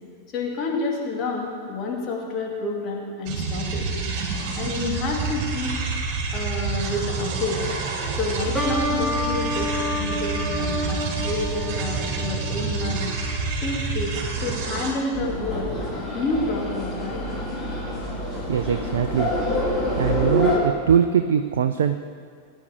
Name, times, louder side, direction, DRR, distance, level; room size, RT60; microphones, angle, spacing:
voice 1, 0.3-3.9 4.6-5.8 6.3-7.6 8.1-13.1 13.6-15.8 16.1-17.3 18.9-19.1, left 2 dB, 30° left, -2 dB, 2.5 m, -29 dB
sound 1, 3.3-14.9, right 4 dB, 40° right, 3.2 m, -28 dB
sound 2, 8.5-14.0, equal, 5° right, 2.1 m, -30 dB
sound 3, 15.1-20.6, left 1 dB, 15° left, 3.1 m, -27 dB
voice 2, 18.5-19.3 20.0-22.0, right 8 dB, 60° right, 8 dB, 0.5 m, -21 dB
19.0 x 9.9 x 3.6 m, 2.2 s
figure-of-eight pair, 90°, 0 cm